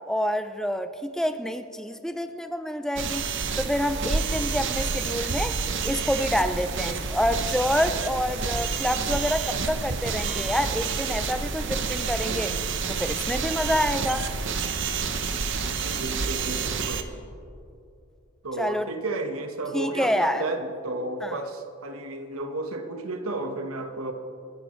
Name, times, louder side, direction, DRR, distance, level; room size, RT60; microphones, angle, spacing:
voice 1, 0.1-3.3 3.6-5.6 5.8-12.5 12.9-14.3 18.6-18.9 19.7-20.4 21.2-21.4, equal, 5° left, 8 dB, 0.4 m, -27 dB
sound 1, 3.0-17.0, right 5 dB, 60° right, 0.9 m, -29 dB
sound 2, 7.7-17.5, equal, 90° left, 3.5 m, -53 dB
voice 2, 15.8-17.1 18.4-24.1, right 2 dB, 90° right, 6 dB, 1.3 m, -32 dB
29.0 x 11.0 x 3.2 m, 2.6 s
head